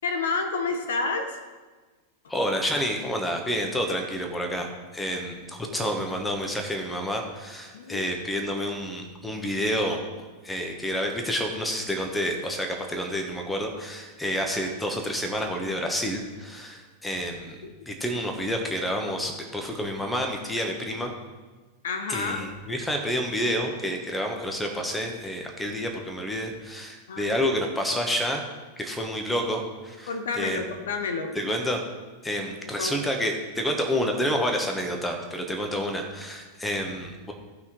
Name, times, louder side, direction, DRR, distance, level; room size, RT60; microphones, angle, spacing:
voice 1, 0.0-1.5 5.6-5.8 7.7-8.0 17.6-17.7 21.8-22.5 27.1-27.4 30.1-31.4 32.8-33.1, left 4 dB, 60° left, 7 dB, 1.0 m, -30 dB
voice 2, 2.3-10.0 10.4-21.1 22.1-28.4 28.8-30.7 31.3-31.8 32.2-37.3, equal, 5° left, 3 dB, 1.5 m, -29 dB
15.0 x 5.7 x 4.6 m, 1.3 s
figure-of-eight pair, 90°, 0 cm